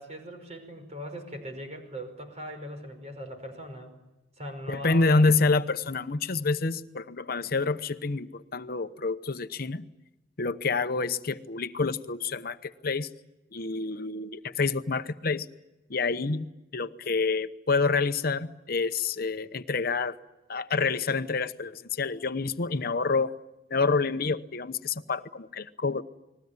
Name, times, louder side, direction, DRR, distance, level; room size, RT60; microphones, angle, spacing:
voice 1, 0.0-3.9 4.4-5.2, equal, 40° right, 5.4 m, -40 dB
voice 2, 4.7-9.8 10.4-13.1 13.5-15.5 15.9-16.5 16.7-20.2 20.5-23.3 23.7-26.0, left 4 dB, 55° left, 0.9 m, -27 dB
29.5 x 20.5 x 9.6 m
head